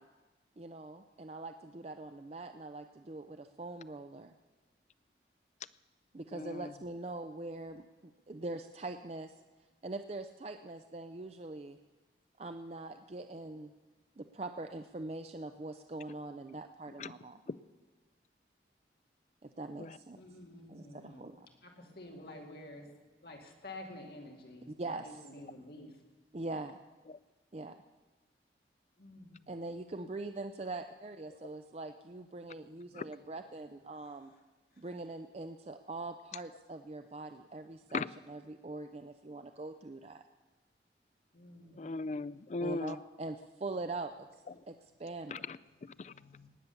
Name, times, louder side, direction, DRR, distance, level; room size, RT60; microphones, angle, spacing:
voice 1, 0.6-4.3 6.1-9.4 9.8-11.8 12.4-13.7 14.2-17.4 19.4-20.2 20.7-21.5 24.7-25.3 26.3-26.8 27.5-27.8 29.5-34.3 34.8-38.0 38.3-40.2 42.6-44.1 44.7-45.5, right 2 dB, 35° right, 7 dB, 0.5 m, -43 dB
voice 2, 6.3-6.7 17.0-17.1 17.5-17.6 19.8-20.0 27.1-27.2 32.9-33.1 37.9-38.1 41.7-43.0 45.3-46.1, left 3 dB, 40° left, 17 dB, 0.4 m, -38 dB
voice 3, 20.1-21.3 21.6-22.9 23.2-26.0 29.0-29.5 41.3-42.1 46.0-46.5, left 1 dB, 60° left, 2 dB, 2.3 m, -50 dB
18.5 x 8.5 x 7.0 m, 1.2 s
head